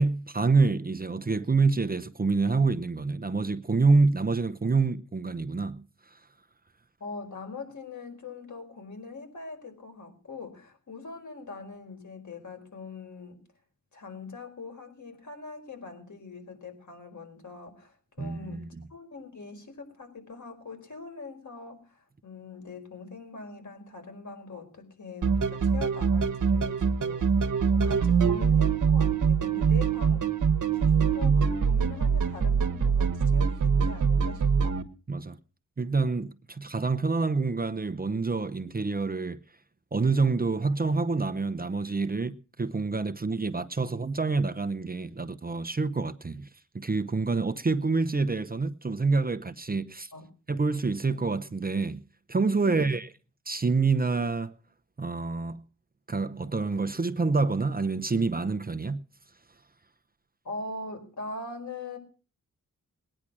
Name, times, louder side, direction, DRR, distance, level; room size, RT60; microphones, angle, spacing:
voice 1, 0.0-5.8 18.2-18.8 35.1-35.4 35.8-39.4 39.9-46.5 46.7-50.1 50.5-52.0 52.3-53.1 53.5-54.5 55.0-55.6 56.1-59.0, right 4 dB, 30° right, 0.8 m, -27 dB
voice 2, 7.0-13.4 13.9-30.3 30.7-34.8 50.1-50.2 52.6-52.9 60.4-62.0, left 3 dB, 65° left, 5.0 m, -42 dB
sound 1, 25.2-34.8, right 6 dB, 65° right, 1.3 m, -24 dB
19.5 x 10.0 x 6.2 m
wide cardioid pair, 80°, 32 cm